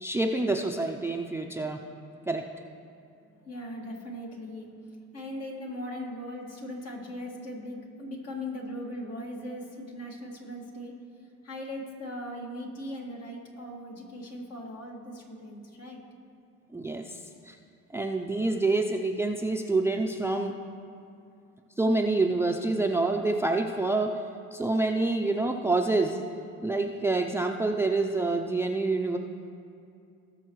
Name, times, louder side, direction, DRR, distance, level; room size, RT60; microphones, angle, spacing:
voice 1, 0.0-1.8 2.3-2.4 16.7-17.2 17.5-17.6 17.9-20.5 21.8-24.1 24.5-26.2 26.6-29.2, right 2 dB, 10° right, 3 dB, 0.5 m, -27 dB
voice 2, 3.4-4.7 5.1-11.0 11.4-16.0, left 1 dB, 55° left, -1 dB, 2.0 m, -39 dB
19.0 x 6.7 x 3.1 m, 2.5 s
cardioid pair, 90°, 30 cm